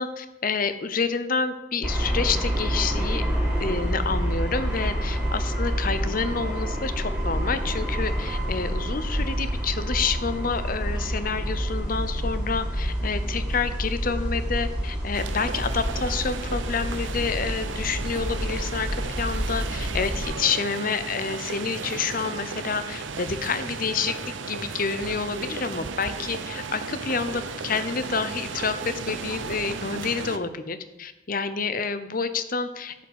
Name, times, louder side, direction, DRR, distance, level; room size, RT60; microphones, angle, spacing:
voice 1, 0.0-3.2 3.6-18.9 19.2-24.1 24.5-28.8 29.1-33.0, left 5 dB, 45° left, 12 dB, 0.7 m, -28 dB
sound 1, 1.8-20.2, equal, 5° right, 2.4 m, -28 dB
sound 2, 15.1-30.4, right 4 dB, 75° right, 0.8 m, -35 dB
10.5 x 5.6 x 7.9 m, 0.97 s
head